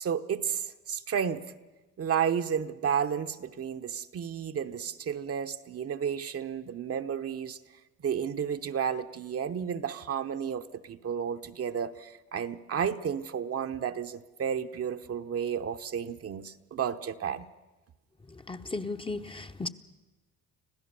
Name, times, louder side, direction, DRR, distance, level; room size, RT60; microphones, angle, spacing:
voice 1, 0.0-1.4 2.0-7.6 8.0-17.5, right 8 dB, 50° right, 1.0 m, -32 dB
voice 2, 18.5-19.7, left 3 dB, 15° left, 0.8 m, -35 dB
26.0 x 16.0 x 6.9 m
cardioid pair, 90°, 30 cm